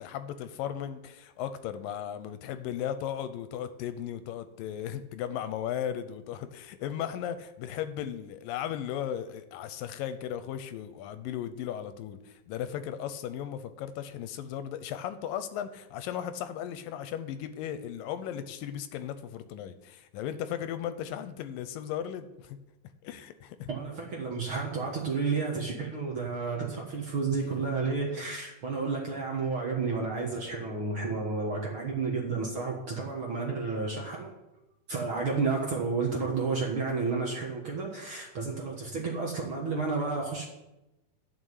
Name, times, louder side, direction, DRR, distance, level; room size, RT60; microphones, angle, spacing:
voice 1, 0.0-22.6 23.0-23.7, left 10 dB, 80° left, 11 dB, 2.3 m, -36 dB
voice 2, 23.7-34.4 34.9-40.4, right 4 dB, 50° right, -1 dB, 1.7 m, -31 dB
11.5 x 5.8 x 8.1 m, 0.95 s
omnidirectional pair, 4.1 m